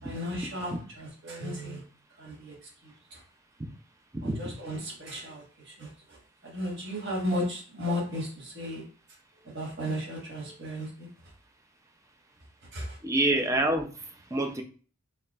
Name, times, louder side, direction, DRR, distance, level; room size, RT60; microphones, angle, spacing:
voice 1, 0.0-1.8 2.2-3.2 4.2-8.8 9.4-11.3 12.7-13.0, equal, 50° right, -3 dB, 1.4 m, -35 dB
voice 2, 4.1-4.5 13.0-13.9 14.3-14.6, right 1 dB, 15° right, 4 dB, 0.4 m, -26 dB
4.1 x 3.2 x 2.3 m, 0.40 s
head